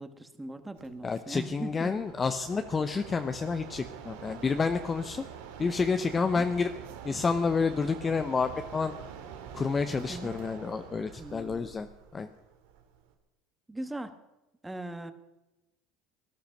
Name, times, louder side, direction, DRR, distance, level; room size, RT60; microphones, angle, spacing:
voice 1, 0.0-1.9 6.2-6.4 10.1-10.3 11.2-11.7 13.7-14.1 14.6-15.1, right 1 dB, 10° right, 9 dB, 1.5 m, -40 dB
Mechanisms, 0.7-13.1, right 7 dB, 90° right, 2.3 m, -45 dB
voice 2, 1.0-5.2 5.6-6.7 7.0-8.9 9.5-11.9 12.1-12.3, left 5 dB, 25° left, 9 dB, 0.8 m, -29 dB
18.5 x 11.5 x 6.6 m, 0.99 s
supercardioid pair, 115°, 0 cm